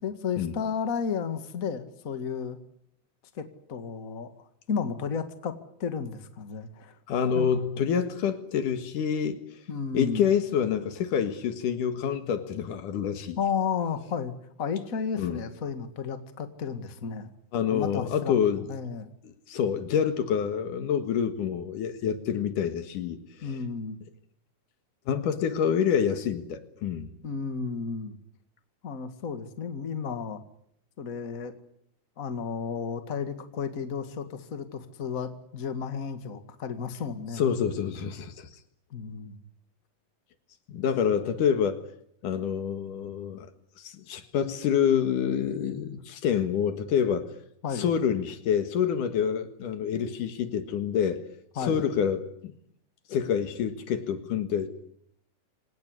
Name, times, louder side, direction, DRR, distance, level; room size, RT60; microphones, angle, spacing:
voice 1, 0.0-2.6 3.4-4.3 4.7-7.0 7.3-7.5 9.7-10.2 13.4-14.3 14.6-17.3 17.7-18.4 18.7-19.1 23.4-24.0 27.2-28.2 28.8-30.4 31.0-31.6 32.2-37.4 38.9-39.4 47.6-47.9 51.6-51.8, left 6 dB, 30° left, 8 dB, 2.0 m, -33 dB
voice 2, 7.1-9.4 9.9-13.4 15.2-15.4 17.5-18.7 19.2-23.5 25.1-27.1 37.4-38.5 40.7-41.8 42.2-43.5 43.8-47.3 47.8-51.2 51.6-52.5 53.1-54.8, left 8 dB, 80° left, 10 dB, 3.2 m, -27 dB
25.0 x 18.5 x 9.8 m, 0.72 s
omnidirectional pair, 3.6 m